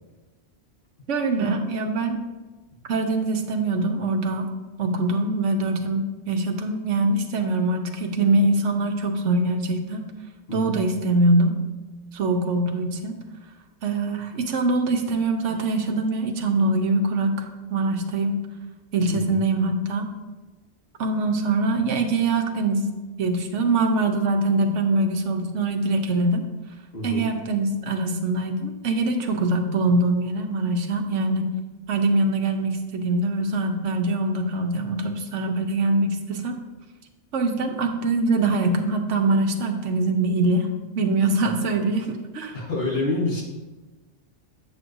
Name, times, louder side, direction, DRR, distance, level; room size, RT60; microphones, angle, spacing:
voice 1, 1.1-2.2 2.9-4.5 4.8-10.0 10.5-11.6 12.1-13.1 13.8-18.4 18.9-20.1 21.0-22.8 23.2-26.4 27.0-31.5 31.9-36.5 37.3-40.7 40.9-42.1 42.3-42.5, right 2 dB, 75° right, 5 dB, 1.1 m, -23 dB
voice 2, 26.9-27.2 42.5-43.4, left 2 dB, 55° left, -4 dB, 1.9 m, -27 dB
8.5 x 6.1 x 2.6 m, 1.2 s
omnidirectional pair, 1.3 m